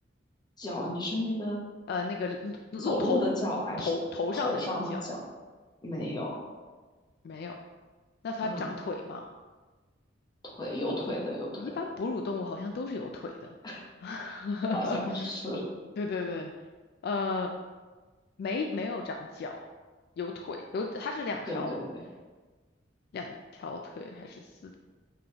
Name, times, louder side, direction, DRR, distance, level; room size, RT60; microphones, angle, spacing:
voice 1, 0.6-1.6 2.8-3.9 4.3-5.2 5.8-6.3 8.4-8.7 10.4-11.7 13.6-13.8 14.7-15.6 21.5-22.0, left 1 dB, 25° left, -3 dB, 0.9 m, -32 dB
voice 2, 1.9-3.2 3.8-5.0 7.2-7.5 8.2-9.3 11.6-13.3 13.6-15.3 16.0-16.5 17.0-17.5 18.4-19.6 20.2-21.7 23.1-24.8, left 3 dB, 55° left, 3 dB, 0.3 m, -34 dB
5.0 x 3.7 x 2.9 m, 1.3 s
head